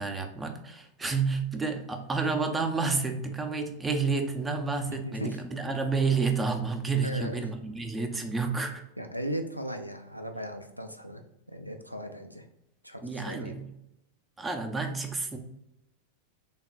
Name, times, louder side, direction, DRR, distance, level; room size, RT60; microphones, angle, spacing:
voice 1, 0.0-8.8 13.0-13.7 14.4-15.4, right 4 dB, 10° right, 5 dB, 0.5 m, -30 dB
voice 2, 4.8-5.4 7.0-7.4 9.0-11.2 11.5-12.4 12.8-13.5, equal, 90° right, 6 dB, 0.4 m, -37 dB
3.4 x 2.1 x 3.9 m, 0.84 s
figure-of-eight pair, 90°, 0 cm